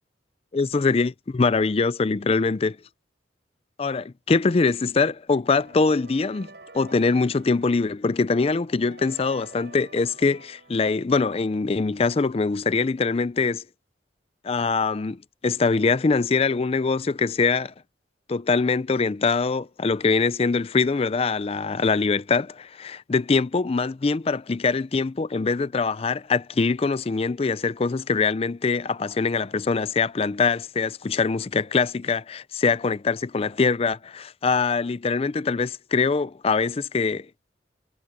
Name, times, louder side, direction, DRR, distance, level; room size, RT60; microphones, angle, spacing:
voice 1, 0.5-2.8 3.8-13.6 14.4-17.7 18.3-37.3, left 4 dB, 35° left, 0.4 m, -23 dB
sound 1, 5.6-8.2 8.8-11.3, right 2 dB, 65° right, 7.3 m, -48 dB
head